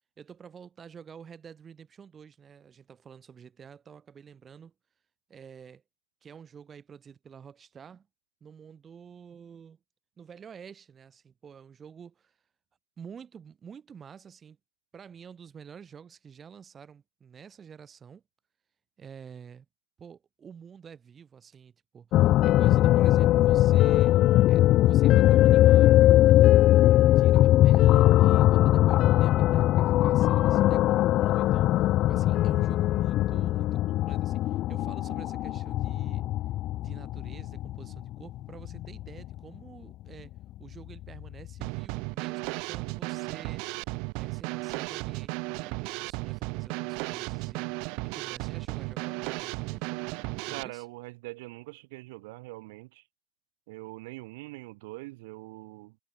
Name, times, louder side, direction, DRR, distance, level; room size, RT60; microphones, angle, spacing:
voice 1, 0.2-4.7 5.3-5.8 6.2-8.1 8.4-9.8 10.2-12.4 13.0-14.6 14.9-18.2 19.0-19.6 20.0-24.1 24.5-26.0 27.1-36.2 36.8-40.3 40.6-43.8 44.1-50.0 50.5-50.9, right 7 dB, 20° right, 5.1 m, -49 dB
sound 1, 22.1-39.4 41.0-41.1 41.5-41.6, left 14 dB, 35° left, 0.7 m, -21 dB
Drum kit / Snare drum, 41.6-50.6, right 30 dB, 55° right, 0.5 m, -34 dB
voice 2, 50.5-53.0 53.7-56.0, right 23 dB, 70° right, 2.5 m, -43 dB
supercardioid pair, 165°, 0 cm